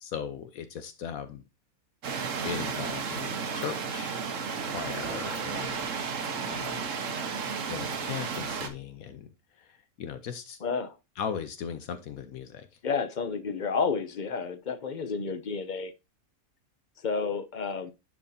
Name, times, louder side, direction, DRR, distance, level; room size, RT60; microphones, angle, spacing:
voice 1, 0.0-1.4 2.4-4.2 4.7-6.2 6.5-6.9 7.7-9.3 9.6-10.6 11.2-12.7, left 7 dB, 75° left, 1.2 m, -38 dB
sound 1, 2.0-8.7, right 5 dB, 60° right, 1.4 m, -33 dB
voice 2, 10.6-11.0 12.8-15.9 17.0-17.9, left 5 dB, 45° left, 0.7 m, -30 dB
10.5 x 4.6 x 2.7 m
omnidirectional pair, 1.5 m